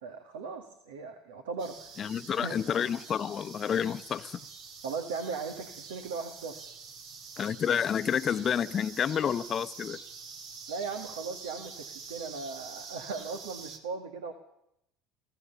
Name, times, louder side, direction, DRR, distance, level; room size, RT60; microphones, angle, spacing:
voice 1, 0.0-1.9 2.4-2.6 4.8-6.6 10.7-14.3, right 4 dB, 85° right, 1.9 m, -38 dB
sound 1, 1.6-13.8, right 5 dB, 65° right, 2.4 m, -46 dB
voice 2, 2.0-4.4 7.4-10.0, left 8 dB, 40° left, 0.8 m, -29 dB
24.5 x 16.0 x 6.9 m
hypercardioid pair, 80°, 0 cm